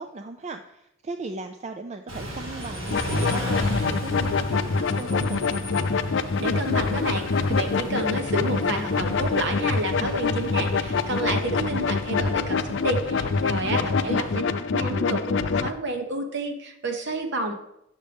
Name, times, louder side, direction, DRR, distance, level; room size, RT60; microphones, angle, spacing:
voice 1, 0.0-5.7 13.6-14.3, right 3 dB, 35° right, 6 dB, 0.4 m, -37 dB
Car / Idling / Accelerating revving vroom, 2.1-14.4, left 1 dB, 75° right, 2.2 m, -35 dB
sound 1, 2.6-3.4 4.8-5.8, left 2 dB, ahead, 0.8 m, -43 dB
sound 2, 2.9-15.7, left 4 dB, 60° left, 0.4 m, -25 dB
voice 2, 6.4-14.4 14.7-17.5, right 2 dB, 60° right, 5 dB, 1.1 m, -30 dB
9.7 x 6.5 x 3.5 m, 0.80 s
head